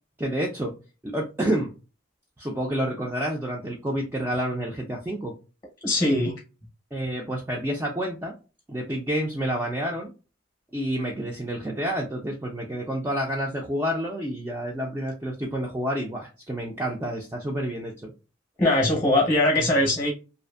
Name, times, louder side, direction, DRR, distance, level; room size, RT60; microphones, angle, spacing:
voice 1, 0.2-0.7 1.0-1.7 2.4-5.3 6.9-8.3 8.7-10.1 10.7-18.1 19.6-19.7, right 1 dB, 10° right, 0.3 m, -29 dB
voice 2, 5.8-6.3 18.6-20.1, left 1 dB, 20° left, 0.7 m, -21 dB
2.5 x 2.4 x 2.3 m
head